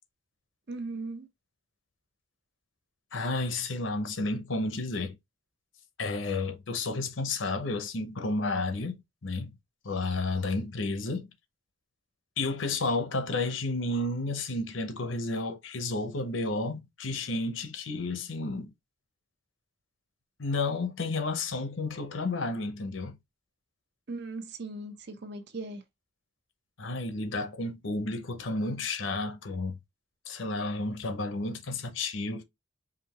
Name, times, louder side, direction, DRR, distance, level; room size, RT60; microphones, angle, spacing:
voice 1, 0.7-1.3 24.1-25.8, right 2 dB, 60° right, 0.7 m, -38 dB
voice 2, 3.1-5.2 6.0-9.0 9.2-9.6 9.8-11.3 12.4-18.7 20.4-23.2 26.8-29.8 30.3-32.4, left 2 dB, 70° left, 0.8 m, -31 dB
5.1 x 2.7 x 2.9 m
head